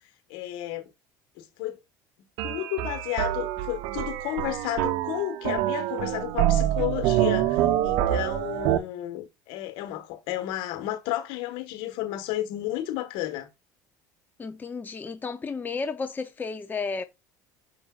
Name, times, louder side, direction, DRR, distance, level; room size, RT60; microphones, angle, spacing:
voice 1, 0.3-0.8 1.4-1.8 2.4-13.5, left 14 dB, 70° left, 1.5 m, -32 dB
sound 1, 2.4-8.8, right 12 dB, 70° right, 0.7 m, -26 dB
voice 2, 14.4-17.0, left 4 dB, 20° left, 0.7 m, -32 dB
6.9 x 5.5 x 2.5 m
supercardioid pair, 85°, 9 cm